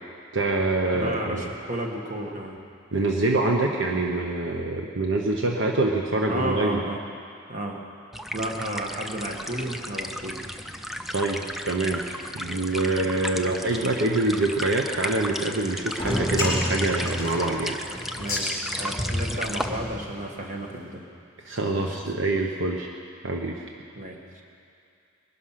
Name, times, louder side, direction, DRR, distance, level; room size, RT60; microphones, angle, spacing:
voice 1, 0.3-1.4 2.9-6.8 11.1-12.0 12.3-17.8 21.4-22.9 23.2-23.6, right 2 dB, 65° right, 1 dB, 1.1 m, -25 dB
voice 2, 0.9-2.6 6.3-7.0 7.5-7.8 8.3-10.4 13.3-13.9 18.1-21.1 21.8-22.0 24.0-24.4, right 1 dB, 35° right, 1 dB, 1.7 m, -33 dB
sound 1, 8.1-19.7, equal, ahead, 0.4 m, -35 dB
sound 2, 15.9-20.4, left 1 dB, 15° left, 4.3 m, -29 dB
21.0 x 11.5 x 5.8 m, 2.5 s
head